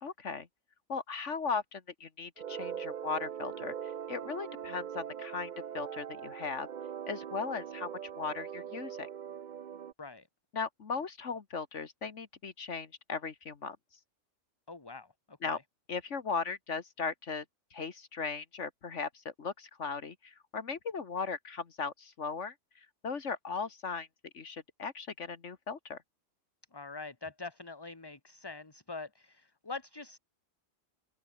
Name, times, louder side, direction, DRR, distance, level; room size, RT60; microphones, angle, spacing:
voice 1, 0.0-0.5 0.9-6.7 7.1-7.9 8.2-9.1 10.5-13.8 15.4-15.6 15.9-17.5 17.7-22.5 23.0-24.1 24.3-26.0, left 5 dB, 65° left, 1.8 m, -37 dB
sound 1, 2.4-9.9, right 8 dB, 50° right, 0.6 m, -41 dB
voice 2, 14.7-15.6 26.7-30.2, left 3 dB, 20° left, 1.4 m, -44 dB
omnidirectional pair, 1.3 m